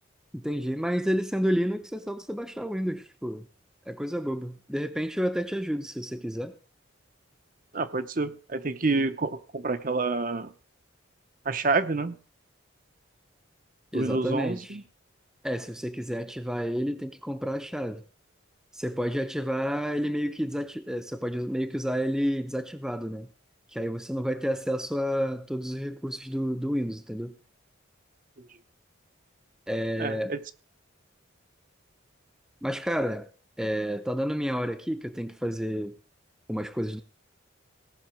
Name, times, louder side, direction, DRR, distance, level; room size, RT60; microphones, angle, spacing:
voice 1, 0.3-3.5 3.9-6.5 13.9-14.8 15.4-18.0 18.7-23.3 23.7-27.3 29.7-30.4 32.6-33.3 33.6-35.9 36.5-37.0, equal, 5° right, 0.6 m, -30 dB
voice 2, 7.7-10.5 11.5-12.2 13.9-14.8 28.4-28.5 30.0-30.4, right 3 dB, 40° right, 0.7 m, -28 dB
17.5 x 6.0 x 6.0 m
head